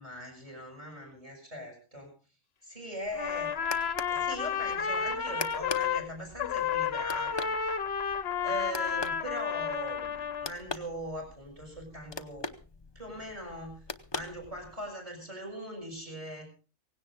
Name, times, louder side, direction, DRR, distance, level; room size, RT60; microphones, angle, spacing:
voice 1, 0.0-2.1 2.6-3.5 4.1-7.5 8.4-12.5 12.9-13.8 14.1-16.5, equal, 25° right, 2 dB, 6.2 m, -40 dB
sound 1, 3.0-14.9, left 3 dB, 25° left, 0.6 m, -43 dB
Trumpet, 3.1-6.1 6.4-10.5, left 7 dB, 55° left, 1.1 m, -31 dB
17.5 x 17.0 x 3.7 m, 0.35 s
omnidirectional pair, 1.4 m